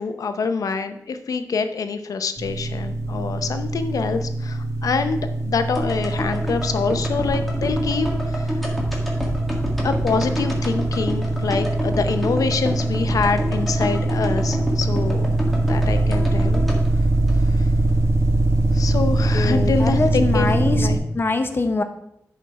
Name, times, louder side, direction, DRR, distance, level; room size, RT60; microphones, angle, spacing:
voice 1, 0.0-8.7 9.8-15.3 15.7-16.7 17.4-17.7 18.7-21.0, left 5 dB, 80° left, 8 dB, 0.7 m, -26 dB
sound 1, 2.4-21.0, right 2 dB, 50° right, 1.4 m, -22 dB
sound 2, 5.7-17.9 18.2-18.3, equal, ahead, 1.8 m, -29 dB
voice 2, 19.3-20.9 21.1-21.8, left 3 dB, 40° left, 7 dB, 0.7 m, -23 dB
10.5 x 4.4 x 4.7 m, 0.78 s
wide cardioid pair, 115°, 6 cm